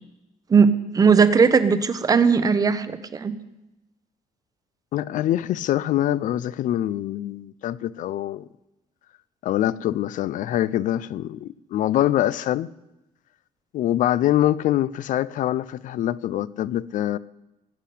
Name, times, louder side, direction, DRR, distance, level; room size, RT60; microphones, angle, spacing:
voice 1, 0.5-3.4, right 5 dB, 25° right, 0.8 m, -18 dB
voice 2, 4.9-8.5 9.4-12.7 13.7-17.2, left 12 dB, 65° left, 0.5 m, -24 dB
18.5 x 8.3 x 8.4 m
cardioid pair, 160°, 15 cm